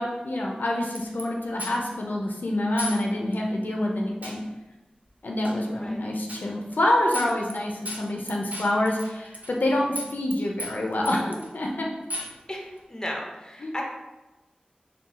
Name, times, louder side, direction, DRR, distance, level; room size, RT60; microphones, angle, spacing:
voice 1, 0.0-4.4 5.2-11.9 13.6-13.7, left 1 dB, 85° left, -1 dB, 0.5 m, -27 dB
sound 1, 1.0-1.2 1.6-2.0 2.8-3.0 3.3-3.4 4.2-4.4 5.4-5.6 6.3-6.5 6.7-6.8 7.1-7.6 7.9-9.7 10.0-10.3 10.6-11.5 12.1-12.4, left 1 dB, 60° right, 0.6 m, -35 dB
voice 2, 12.5-13.8, left 1 dB, 20° left, 0 dB, 0.8 m, -35 dB
3.7 x 2.3 x 4.0 m, 1.1 s
wide cardioid pair, 45°, 3 cm